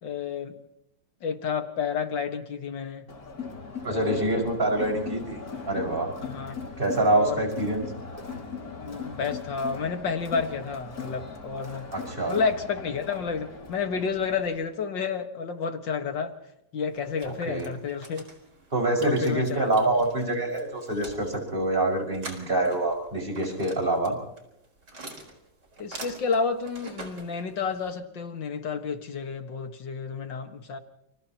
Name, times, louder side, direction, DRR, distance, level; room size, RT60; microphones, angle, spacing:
voice 1, 0.0-0.6 1.2-3.1 3.8-4.5 6.2-6.6 7.1-7.4 8.8-11.9 12.3-16.3 16.7-18.2 19.0-19.7 25.8-30.8, left 5 dB, 80° left, 2.4 m, -30 dB
Crowd, 3.1-14.6, left 5 dB, 50° left, 3.1 m, -39 dB
voice 2, 3.8-5.4 5.7-6.1 6.8-7.9 11.9-12.4 17.2-17.7 18.7-24.1, right 2 dB, 30° right, 6.1 m, -26 dB
sound 1, 16.9-28.0, right 2 dB, 65° right, 5.0 m, -46 dB
30.0 x 28.5 x 3.0 m
omnidirectional pair, 2.0 m